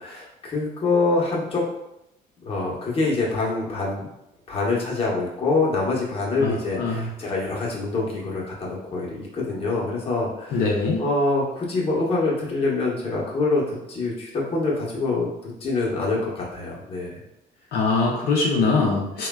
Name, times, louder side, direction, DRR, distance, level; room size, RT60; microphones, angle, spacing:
voice 1, 0.0-1.6 2.4-4.1 4.5-10.7 11.0-17.2, left 3 dB, 35° left, -4 dB, 0.8 m, -25 dB
voice 2, 6.8-7.1 10.5-11.0 17.7-19.3, left 3 dB, 75° left, -2 dB, 0.5 m, -22 dB
3.2 x 2.2 x 2.2 m, 0.84 s
cardioid pair, 110°, 17 cm